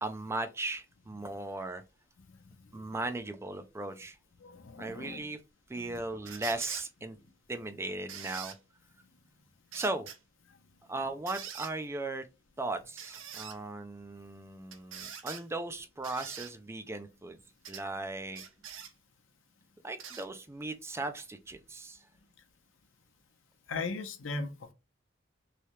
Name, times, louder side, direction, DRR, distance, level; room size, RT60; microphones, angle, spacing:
voice 1, 0.0-1.8 2.7-4.2 4.8-5.4 5.7-7.2 7.5-8.5 9.7-10.1 10.9-12.3 12.6-17.4 17.7-18.4 19.8-22.0, right 2 dB, 15° right, 0.3 m, -37 dB
voice 2, 4.4-5.2 5.8-6.0 23.7-24.7, left 3 dB, 80° left, 0.7 m, -38 dB
sound 1, 6.2-6.9 8.1-8.6 9.7-10.2 11.3-11.7 13.0-13.6 14.7-15.4 16.0-16.5 17.6-17.8 18.3-18.9 20.0-20.3 21.2-21.3, right 8 dB, 75° right, 0.6 m, -43 dB
3.2 x 2.8 x 3.0 m
head